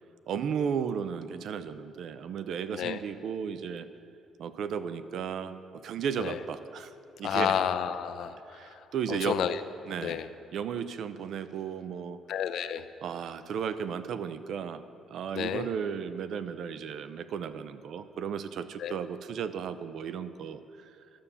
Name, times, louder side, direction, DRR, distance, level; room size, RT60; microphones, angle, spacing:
voice 1, 0.3-3.9 4.4-6.9 7.2-7.6 8.5-9.4 9.9-10.2 10.5-12.2 13.0-21.0, right 7 dB, 55° right, 12 dB, 0.5 m, -34 dB
voice 2, 7.2-8.8 9.1-9.6 10.0-10.3 12.3-12.9 15.3-15.7 18.8-19.0, left 9 dB, 60° left, 11 dB, 0.5 m, -31 dB
11.5 x 7.0 x 6.9 m, 2.8 s
cardioid pair, 155°, 0 cm